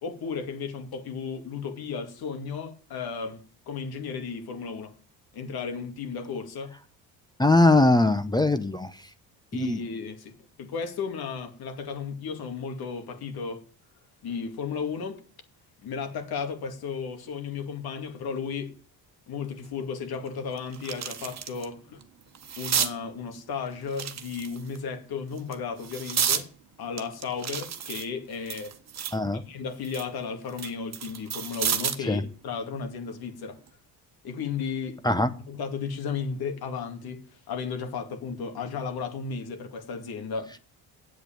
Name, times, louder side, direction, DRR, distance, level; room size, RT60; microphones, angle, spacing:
voice 1, 0.0-4.9 5.3-6.7 9.5-13.7 14.2-15.2 15.8-18.8 19.3-22.0 22.6-26.5 26.8-28.8 29.3-33.6 34.2-35.0 35.5-40.6, left 5 dB, 60° left, 2.4 m, -34 dB
voice 2, 7.4-8.9 9.5-9.8 29.1-29.4 32.1-32.2 35.0-35.3, left 2 dB, 10° left, 0.8 m, -21 dB
sound 1, 19.6-19.7 20.2-21.7 22.0-22.9 23.9-24.8 25.4-26.5 27.0-29.2 29.6-32.1 33.5-33.7, right 8 dB, 40° right, 1.4 m, -31 dB
8.5 x 8.0 x 9.0 m
cardioid pair, 105°, 42 cm